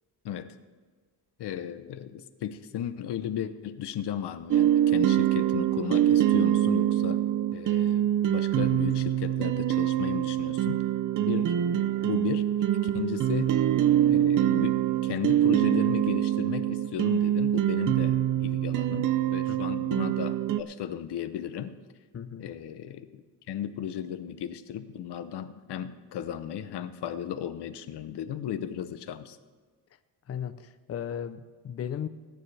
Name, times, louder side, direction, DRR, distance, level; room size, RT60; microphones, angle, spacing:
voice 1, 1.4-7.2 7.5-10.8 11.2-13.6 14.1-21.8 22.4-29.4, left 9 dB, 80° left, 11 dB, 0.9 m, -35 dB
sound 1, 4.5-20.6, right 11 dB, 50° right, 0.5 m, -25 dB
voice 2, 22.1-22.5 30.3-32.1, left 8 dB, 35° left, 10 dB, 0.6 m, -36 dB
18.5 x 10.0 x 3.4 m, 1.5 s
cardioid pair, 140°, 40 cm